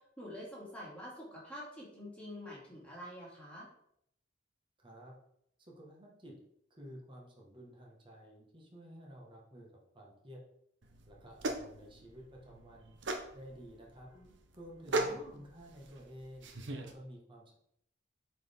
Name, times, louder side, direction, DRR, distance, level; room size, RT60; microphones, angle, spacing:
voice 1, 0.2-3.7 14.1-14.3 14.9-15.4, equal, 5° left, -6 dB, 2.4 m, -47 dB
voice 2, 4.8-5.1 5.7-6.4 6.8-10.4 11.1-13.0 13.3-14.1 14.5-16.5 16.8-17.5, equal, 25° right, -2 dB, 1.5 m, -52 dB
sound 1, 10.8-16.9, right 2 dB, 70° right, 0.8 m, -39 dB
8.0 x 4.4 x 3.5 m, 0.72 s
head